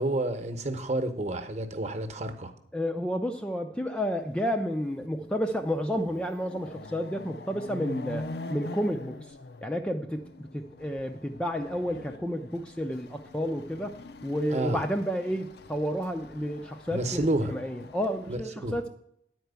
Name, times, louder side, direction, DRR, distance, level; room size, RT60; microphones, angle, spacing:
voice 1, 0.0-2.5 14.5-14.8 16.9-17.5 18.3-18.7, right 1 dB, 40° right, 8 dB, 1.0 m, -30 dB
voice 2, 2.7-9.4 9.6-18.9, equal, 5° left, 5 dB, 0.4 m, -31 dB
Chatter / Car passing by / Motorcycle, 4.3-4.4 4.8-18.4, left 2 dB, 60° left, 0.5 m, -44 dB
10.5 x 4.6 x 8.0 m, 0.73 s
head